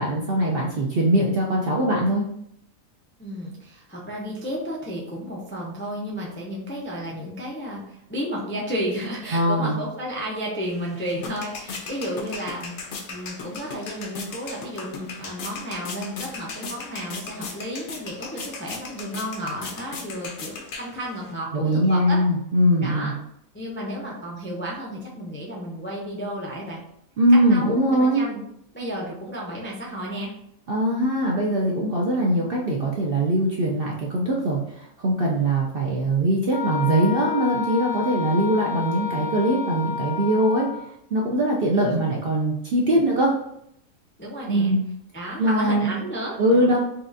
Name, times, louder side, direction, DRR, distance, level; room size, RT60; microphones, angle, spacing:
voice 1, 0.0-2.3 9.3-9.8 21.5-23.1 27.2-28.2 30.7-40.7 41.1-43.3 44.5-44.8 45.4-45.9 46.4-46.8, right 1 dB, 60° right, -2 dB, 0.6 m, -21 dB
voice 2, 3.2-22.2 22.8-23.1 23.5-26.8 27.5-28.4 28.7-30.3 41.7-42.0 44.2-44.7 45.1-46.8, equal, 15° left, -3 dB, 0.4 m, -32 dB
sound 1, 10.6-21.3, left 4 dB, 60° left, 0.9 m, -37 dB
Wind instrument woodwind instrument, 36.5-40.9, left 6 dB, 75° left, 1.4 m, -30 dB
5.7 x 2.4 x 2.6 m, 0.73 s
omnidirectional pair, 1.5 m